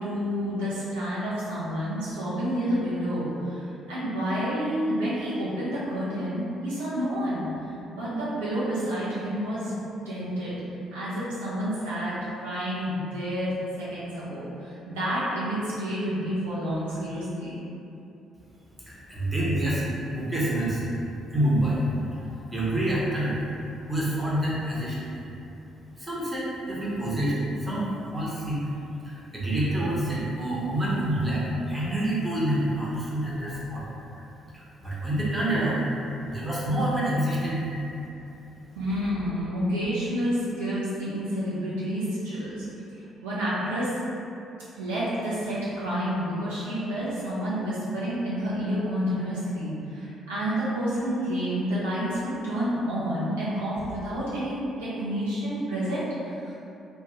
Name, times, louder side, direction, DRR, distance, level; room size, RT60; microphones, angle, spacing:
voice 1, 0.0-9.7 10.1-10.5 10.9-17.6 38.7-42.7 43.2-43.9 44.7-56.5, equal, 75° right, -10 dB, 0.5 m, -29 dB
voice 2, 18.9-19.8 20.1-20.8 21.3-21.8 22.1-23.4 23.9-25.1 26.0-27.9 28.1-28.7 29.0-33.8 34.5-35.8 36.3-37.7, right 1 dB, 15° right, -7 dB, 0.8 m, -27 dB
2.3 x 2.2 x 2.9 m, 2.7 s
figure-of-eight pair, 45°, 0 cm